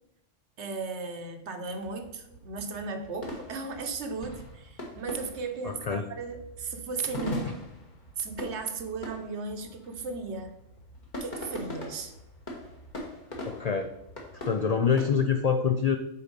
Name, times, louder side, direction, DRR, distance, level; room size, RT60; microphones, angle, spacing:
voice 1, 0.6-7.6 8.2-10.5 11.2-12.1, right 4 dB, 65° right, 6 dB, 1.1 m, -36 dB
sound 1, 1.6-15.0, left 1 dB, 40° left, 1.5 m, -42 dB
voice 2, 5.6-6.0 7.5-7.6 13.5-13.9 14.4-16.0, left 6 dB, 75° left, 7 dB, 0.3 m, -25 dB
6.9 x 4.3 x 5.2 m, 0.82 s
omnidirectional pair, 1.3 m